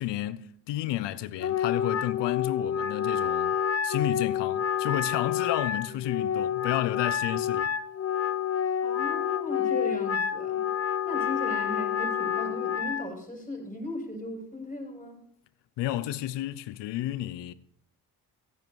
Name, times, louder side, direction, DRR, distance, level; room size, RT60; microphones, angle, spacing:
voice 1, 0.0-3.6 3.8-7.7 15.8-17.5, left 14 dB, 90° left, 0.8 m, -31 dB
Wind instrument woodwind instrument, 1.4-13.1, left 8 dB, 35° left, 0.8 m, -28 dB
voice 2, 8.8-10.6 11.0-15.2, left 1 dB, 20° left, 6.8 m, -37 dB
14.5 x 11.0 x 4.7 m
supercardioid pair, 60°, 41 cm